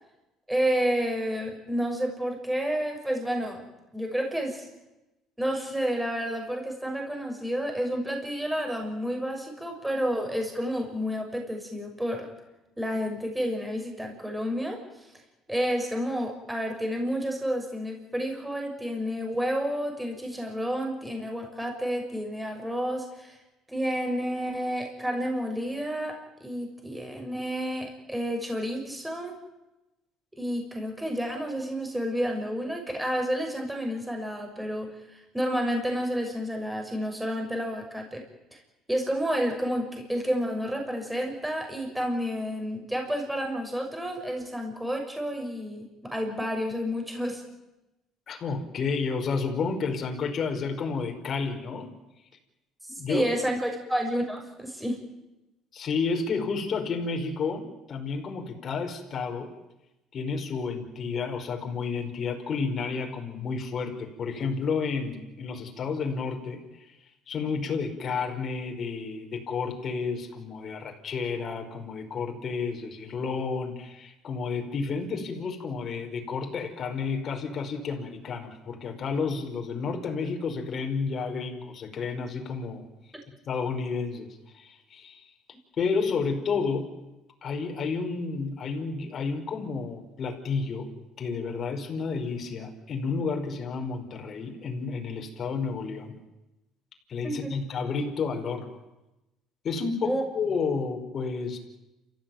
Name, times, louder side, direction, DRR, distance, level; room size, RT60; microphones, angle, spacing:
voice 1, 0.5-3.7 3.9-4.7 5.4-12.3 12.8-14.8 15.5-23.4 23.7-29.4 30.4-38.2 38.9-47.4 52.8-55.0 97.2-97.5 100.0-100.2, equal, 5° right, 2 dB, 6.4 m, -30 dB
voice 2, 48.3-51.9 52.9-53.2 55.7-59.5 60.1-67.0 67.3-82.9 83.5-84.3 84.5-85.3 85.8-86.9 87.4-90.9 91.2-96.1 97.1-98.7 99.6-101.6, left 5 dB, 45° left, 3 dB, 5.0 m, -31 dB
28.5 x 15.5 x 9.3 m, 0.98 s
supercardioid pair, 95°, 0 cm